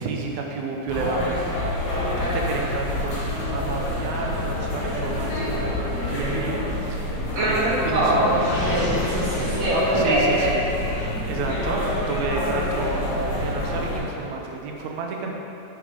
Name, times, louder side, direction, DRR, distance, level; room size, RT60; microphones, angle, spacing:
voice 1, 0.0-1.4 2.2-8.4 9.5-10.6 11.3-15.3, right 4 dB, 80° right, 0 dB, 2.1 m, -31 dB
sound 1, 0.9-14.0, left 1 dB, 90° left, 3.0 m, -27 dB
voice 2, 7.3-10.5, right 1 dB, 50° right, -7 dB, 1.9 m, -23 dB
Gurgling, 8.3-10.4, left 1 dB, 50° left, 2.7 m, -31 dB
7.8 x 6.5 x 3.8 m, 2.9 s
omnidirectional pair, 3.4 m